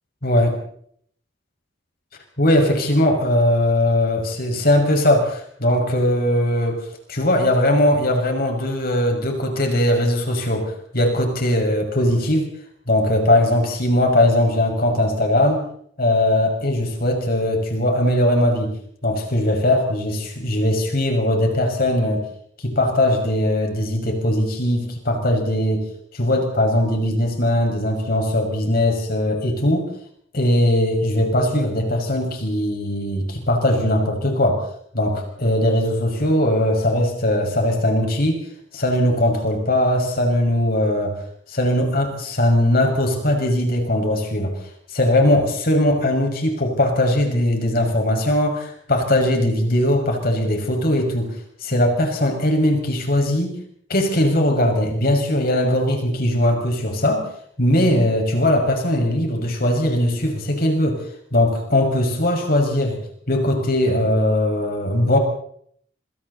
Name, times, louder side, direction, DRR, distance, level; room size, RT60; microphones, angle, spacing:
voice 1, 2.4-12.5 12.9-15.6 16.0-18.7 19.0-22.3 22.6-29.9 30.3-34.6 34.9-38.4 38.7-41.2 41.5-44.5 44.9-51.4 51.6-53.6 53.9-57.3 57.6-61.0 61.3-63.0 63.3-65.2, left 1 dB, 55° left, 2 dB, 6.1 m, -20 dB
27.0 x 26.0 x 4.2 m, 0.64 s
head